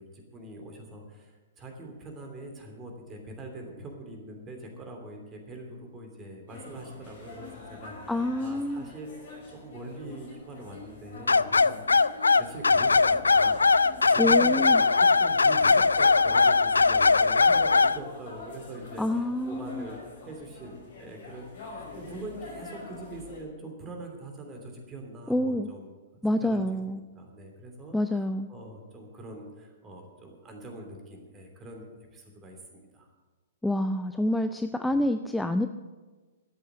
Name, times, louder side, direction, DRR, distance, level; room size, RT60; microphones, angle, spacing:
voice 1, 0.0-11.9 12.3-26.0 26.3-26.6 26.9-28.0 28.5-33.1, right 1 dB, 20° right, 3 dB, 2.9 m, -43 dB
sound 1, 6.5-23.4, left 4 dB, 55° left, 5.4 m, -46 dB
voice 2, 8.1-8.9 14.2-14.8 19.0-19.9 25.3-25.7 26.2-27.0 27.9-28.5 33.6-35.7, left 1 dB, 5° left, 9 dB, 0.5 m, -27 dB
sound 2, 11.3-18.0, left 4 dB, 75° left, 0.3 m, -20 dB
12.5 x 8.5 x 8.1 m, 1.3 s
figure-of-eight pair, 110°, 0 cm